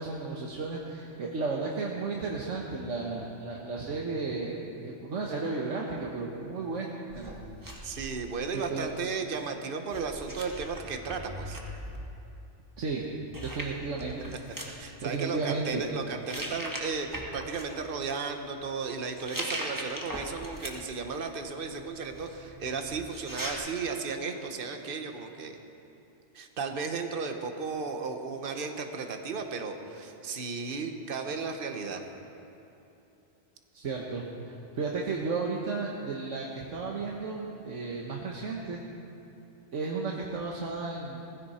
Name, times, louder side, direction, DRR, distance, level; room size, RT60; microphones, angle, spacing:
voice 1, 0.0-4.6 4.8-6.9 7.1-7.4 8.5-8.9 12.8-13.0 13.4-15.8 33.7-38.8 39.7-41.2, right 4 dB, 85° right, -2 dB, 1.6 m, -34 dB
sound 1, 7.1-8.9 9.9-12.0 13.0-13.1 13.3-14.7 15.5-15.8 16.2-17.6 19.1-21.0 21.4-23.5, right 1 dB, 15° right, 1.6 m, -40 dB
voice 2, 7.8-11.6 14.8-25.6 26.3-32.0, right 4 dB, 50° right, 5 dB, 1.2 m, -35 dB
19.0 x 15.0 x 4.3 m, 2.9 s
omnidirectional pair, 1.2 m